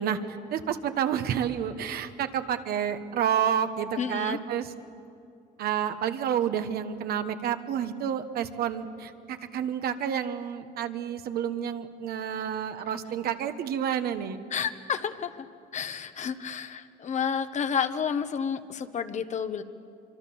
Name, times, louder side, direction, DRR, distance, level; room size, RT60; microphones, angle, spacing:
voice 1, 0.0-4.7 5.6-14.4, right 9 dB, 65° right, 9 dB, 1.3 m, -29 dB
voice 2, 4.0-4.4 14.5-15.5 15.7-19.6, left 7 dB, 45° left, 10 dB, 1.2 m, -30 dB
24.5 x 24.5 x 7.1 m, 2.6 s
cardioid pair, 110°, 17 cm